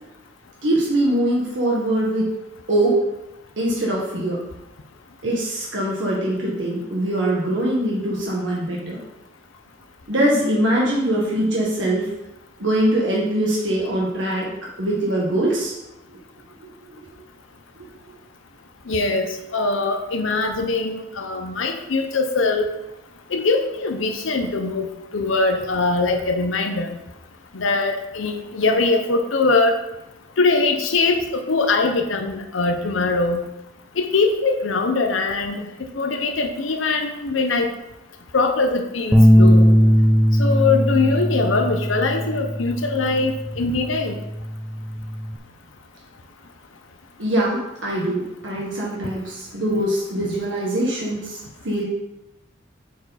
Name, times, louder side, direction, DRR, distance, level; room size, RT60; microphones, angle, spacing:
voice 1, 0.6-2.3 2.7-2.9 3.6-4.4 5.2-9.0 10.1-12.1 12.6-14.5 14.8-15.8 16.9-17.0 47.2-51.4 51.6-51.9, right 1 dB, 65° right, -4 dB, 1.6 m, -22 dB
voice 2, 18.9-22.7 23.3-27.0 27.5-29.7 30.4-33.4 34.0-35.6 35.9-37.7 38.3-39.7 40.4-44.1, left 3 dB, 80° left, 5 dB, 0.8 m, -22 dB
sound 1, 39.1-45.4, equal, ahead, 0.4 m, -18 dB
9.1 x 4.7 x 4.1 m, 0.93 s
head